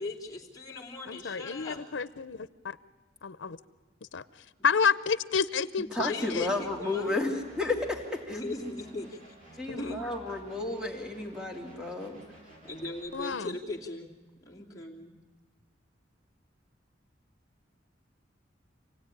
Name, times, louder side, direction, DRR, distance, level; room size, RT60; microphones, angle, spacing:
voice 1, 0.0-1.8 6.0-7.2 8.3-9.2 9.8-10.0 12.6-14.1 14.5-15.1, left 2 dB, 20° left, -2 dB, 2.8 m, -39 dB
voice 2, 1.1-2.8 3.2-3.6 4.1-4.2 4.6-6.5 9.7-10.0 13.1-13.6, left 6 dB, 85° left, 16 dB, 0.7 m, -30 dB
voice 3, 5.9-8.4 9.6-12.2, left 2 dB, 5° right, 2 dB, 2.9 m, -32 dB
sound 1, 6.2-13.1, equal, 45° right, 8.0 m, -53 dB
27.0 x 17.0 x 9.9 m, 1.3 s
head